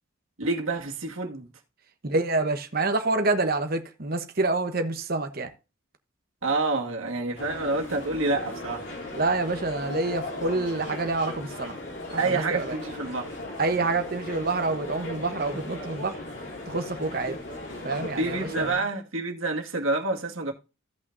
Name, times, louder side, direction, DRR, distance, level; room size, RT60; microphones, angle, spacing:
voice 1, 0.4-1.5 6.4-8.9 12.2-13.4 18.2-20.5, right 3 dB, 80° right, 2.0 m, -28 dB
voice 2, 2.0-5.5 9.1-11.8 12.1-12.8 13.6-16.2 16.7-17.4 17.8-18.8, right 3 dB, 45° right, 1.1 m, -27 dB
sound 1, 7.4-18.7, left 1 dB, 60° left, 3.2 m, -37 dB
16.0 x 5.8 x 2.7 m
head